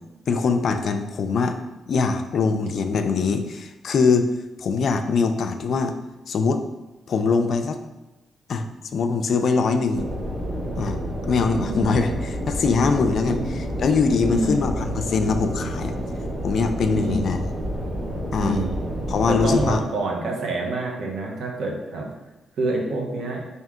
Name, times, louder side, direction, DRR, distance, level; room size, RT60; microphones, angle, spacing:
voice 1, 0.3-1.6 1.9-4.3 4.6-6.0 6.3-6.6 7.1-7.8 8.5-8.6 8.9-10.1 10.8-11.0 11.3-13.4 13.8-15.9 16.4-17.4 18.3-18.6 19.1-19.8, left 4 dB, 65° left, 7 dB, 0.3 m, -22 dB
sound 1, 9.9-19.8, equal, 35° right, 1.3 m, -29 dB
voice 2, 11.6-11.9 13.2-13.5 14.3-14.6 16.9-17.4 18.4-18.8 19.3-22.1 22.6-23.4, right 2 dB, 75° right, 0 dB, 0.8 m, -27 dB
3.5 x 2.8 x 3.5 m, 1.0 s
cardioid pair, 75°, 0 cm